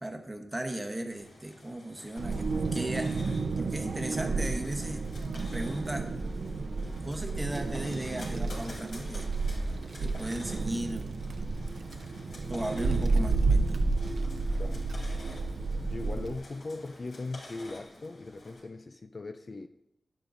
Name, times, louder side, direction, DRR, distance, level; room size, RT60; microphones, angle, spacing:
voice 1, 0.0-5.0 5.5-6.1 7.0-9.3 10.0-11.2 12.5-13.9, right 1 dB, 15° right, 1.0 m, -36 dB
sound 1, 1.1-18.6, left 2 dB, 75° left, 4.3 m, -50 dB
Wind, 2.2-16.4, right 3 dB, 75° right, 0.7 m, -31 dB
voice 2, 15.8-19.7, left 3 dB, 40° left, 0.4 m, -39 dB
12.0 x 9.9 x 2.6 m
wide cardioid pair, 125°, 0 cm